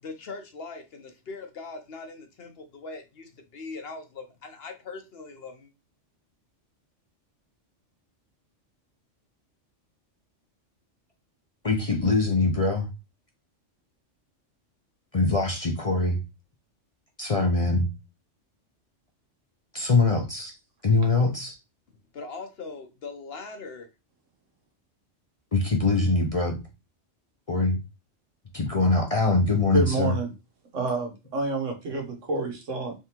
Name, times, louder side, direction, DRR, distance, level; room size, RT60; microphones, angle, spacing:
voice 1, 0.0-5.7 22.1-23.9, left 3 dB, 60° left, 5 dB, 0.9 m, -40 dB
voice 2, 11.6-12.9 15.1-16.2 17.2-17.9 19.7-20.5 20.8-21.6 25.5-26.6 27.5-27.8 28.5-30.1, left 3 dB, 40° left, 2 dB, 0.5 m, -23 dB
voice 3, 29.7-30.3 30.7-32.9, right 2 dB, 85° right, 3 dB, 1.4 m, -28 dB
3.6 x 3.4 x 2.9 m, 0.26 s
omnidirectional pair, 1.3 m